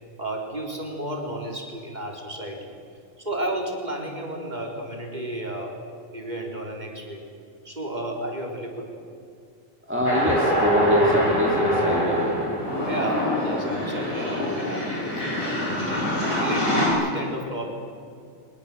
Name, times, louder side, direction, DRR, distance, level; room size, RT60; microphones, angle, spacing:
voice 1, 0.2-2.7 3.2-5.7 6.1-7.2 7.6-8.9 12.9-16.0 16.4-17.7, right 1 dB, 30° right, 0 dB, 4.1 m, -32 dB
voice 2, 9.9-12.5, equal, 10° right, -1 dB, 2.2 m, -23 dB
sound 1, 10.0-16.9, left 1 dB, 85° left, 7.0 m, -25 dB
24.0 x 22.0 x 7.7 m, 2.4 s
omnidirectional pair, 1.4 m